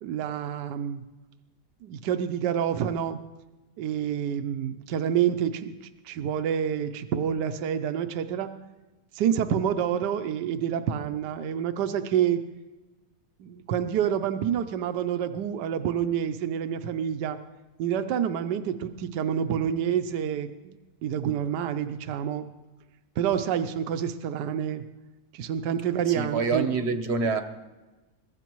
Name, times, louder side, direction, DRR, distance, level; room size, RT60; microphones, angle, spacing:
voice 1, 0.0-1.0 1.8-3.2 3.8-8.5 9.1-12.4 13.4-17.4 17.8-22.5 23.2-24.8 25.3-26.7, right 9 dB, 80° right, 1.3 m, -28 dB
voice 2, 26.1-27.4, right 4 dB, 45° right, 1.0 m, -26 dB
22.5 x 15.5 x 3.0 m
omnidirectional pair, 1.8 m